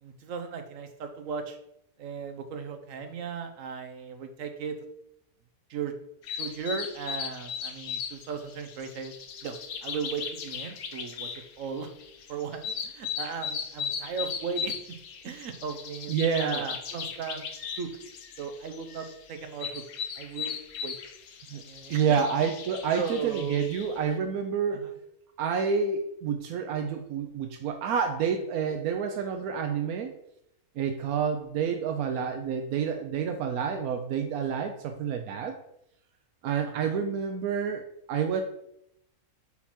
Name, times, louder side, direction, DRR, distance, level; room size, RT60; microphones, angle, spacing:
voice 1, 0.0-1.6 2.0-4.8 5.7-5.9 6.4-9.1 9.4-11.9 12.3-14.8 15.2-17.4 17.8-17.9 18.4-19.8 20.2-20.6 20.8-20.9 21.7-22.2 22.9-23.7 24.7-25.0 36.6-37.0, right 6 dB, 65° right, 7 dB, 1.1 m, -36 dB
sound 1, 6.2-24.0, left 7 dB, 85° left, 1.2 m, -37 dB
voice 2, 16.1-16.7 21.5-21.6 21.9-24.9 25.4-30.1 30.8-35.5 36.4-38.4, right 6 dB, 85° right, 5 dB, 1.1 m, -29 dB
5.7 x 4.4 x 4.3 m, 0.77 s
omnidirectional pair, 1.5 m